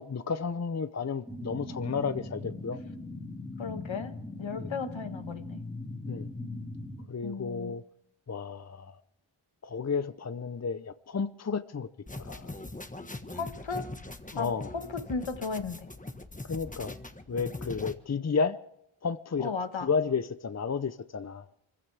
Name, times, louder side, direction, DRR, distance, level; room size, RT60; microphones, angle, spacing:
voice 1, 0.0-2.8 4.6-4.7 6.1-6.3 7.1-7.8 8.3-9.0 9.6-11.9 12.1-12.5 14.3-14.7 16.4-17.0 17.3-18.6 19.0-19.5 19.8-21.5, left 5 dB, 35° left, 0.7 m, -32 dB
sound 1, 1.3-7.0, left 2 dB, ahead, 3.2 m, -40 dB
voice 2, 3.6-4.1 4.4-5.6 7.2-7.8 13.3-13.9 14.3-15.9 19.4-19.9, left 4 dB, 65° left, 1.5 m, -35 dB
sound 2, 12.1-17.9, left 2 dB, 15° left, 1.4 m, -41 dB
25.0 x 15.5 x 3.4 m
cardioid pair, 50°, 49 cm